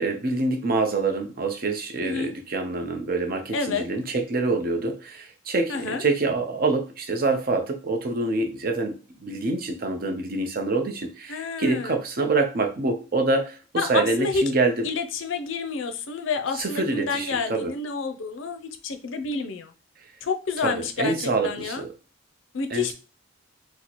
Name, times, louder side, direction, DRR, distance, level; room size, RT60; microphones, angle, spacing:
voice 1, 0.0-14.8 16.5-17.7 20.6-21.9 22.7-22.9, right 3 dB, 45° right, 5 dB, 0.6 m, -26 dB
voice 2, 3.5-3.8 5.7-6.0 11.3-12.0 13.8-14.4 14.8-19.7 20.2-21.1 21.4-21.8 22.5-22.9, left 4 dB, 65° left, 8 dB, 0.4 m, -29 dB
4.0 x 2.0 x 2.9 m, 0.35 s
head